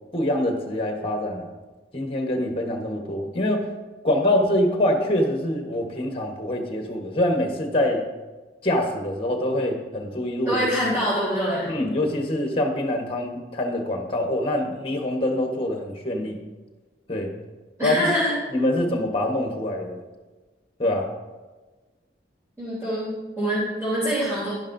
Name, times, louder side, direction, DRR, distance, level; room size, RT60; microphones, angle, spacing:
voice 1, 0.1-1.5 1.9-3.7 4.0-8.0 8.6-10.7 11.7-16.4 17.1-17.3 17.8-18.1 18.5-20.0 20.8-21.1, left 1 dB, 30° left, 3 dB, 1.2 m, -25 dB
voice 2, 10.5-11.7 17.8-18.3 22.6-24.5, equal, 15° right, -12 dB, 3.3 m, -25 dB
11.0 x 10.5 x 2.7 m, 1.2 s
head